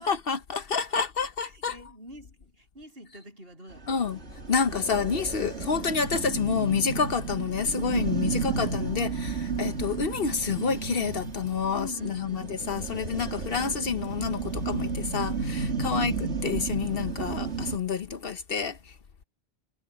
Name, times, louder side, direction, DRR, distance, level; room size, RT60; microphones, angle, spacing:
voice 1, 0.0-1.7 3.9-4.2 4.5-18.9, left 6 dB, 60° left, 1.0 m, -29 dB
voice 2, 1.4-4.2 8.2-8.6 11.7-12.6 15.8-16.1, equal, 60° right, 8.1 m, -45 dB
sound 1, 3.7-17.8, right 4 dB, 75° right, 2.8 m, -33 dB
omnidirectional pair, 1.1 m